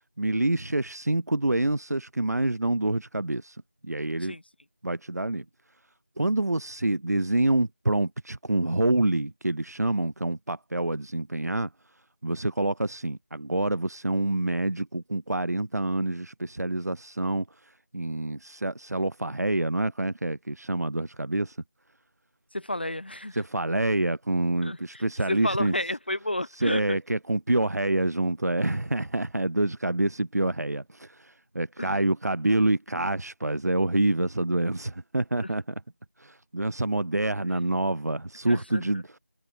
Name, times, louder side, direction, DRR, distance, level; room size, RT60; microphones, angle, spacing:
voice 1, 0.0-4.3 4.8-5.4 6.2-11.7 12.2-21.6 23.3-25.8 26.5-35.6 36.2-39.2, right 2 dB, 85° right, 0.6 m, -27 dB
voice 2, 22.5-23.4 24.6-27.0 31.8-31.9 35.4-35.5 38.5-39.0, left 1 dB, 40° left, 0.3 m, -32 dB
figure-of-eight pair, 170°, 9 cm